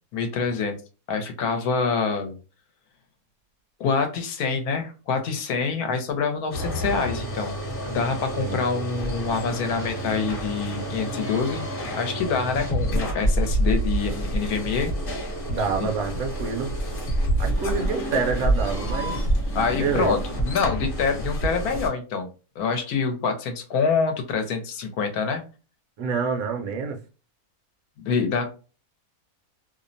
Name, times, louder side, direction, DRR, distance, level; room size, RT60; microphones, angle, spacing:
voice 1, 0.1-0.8 1.1-2.4 3.8-7.6 7.9-11.7 12.0-14.9 15.8-15.9 19.5-22.3 22.6-25.4 28.1-28.5, left 5 dB, 75° left, 1.1 m, -26 dB
sound 1, 6.5-21.9, right 1 dB, 40° left, 0.9 m, -27 dB
voice 2, 8.3-8.9 15.5-16.7 17.4-19.2 19.8-20.2 26.0-27.0, right 5 dB, 70° right, 1.0 m, -27 dB
2.8 x 2.0 x 2.5 m
omnidirectional pair, 1.7 m